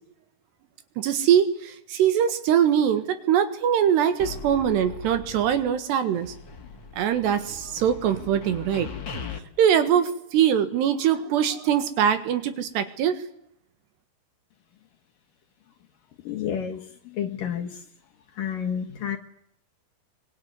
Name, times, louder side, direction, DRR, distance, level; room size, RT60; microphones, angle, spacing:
voice 1, 1.0-6.3 7.0-8.9 9.6-13.2, right 9 dB, 70° right, 10 dB, 3.6 m, -22 dB
sound 1, 4.2-5.9 6.1-9.4, left 5 dB, 40° left, 1.8 m, -39 dB
voice 2, 16.2-17.8 18.4-19.2, left 8 dB, 65° left, 5 dB, 2.5 m, -30 dB
24.5 x 24.0 x 9.7 m, 0.75 s
omnidirectional pair, 5.3 m